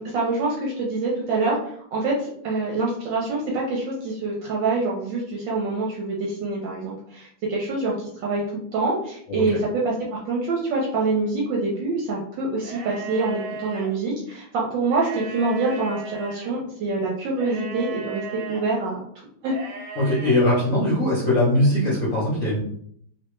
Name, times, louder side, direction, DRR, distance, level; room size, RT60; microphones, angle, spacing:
voice 1, 0.0-19.0 19.4-19.5, right 3 dB, 70° right, -3 dB, 1.2 m, -26 dB
sound 1, 12.6-13.9 14.8-16.5 17.4-18.6 19.4-20.3, right 5 dB, 85° right, 1.5 m, -36 dB
voice 2, 20.0-22.6, left 1 dB, 55° left, -7 dB, 0.9 m, -21 dB
3.2 x 2.7 x 3.1 m, 0.66 s
omnidirectional pair, 2.4 m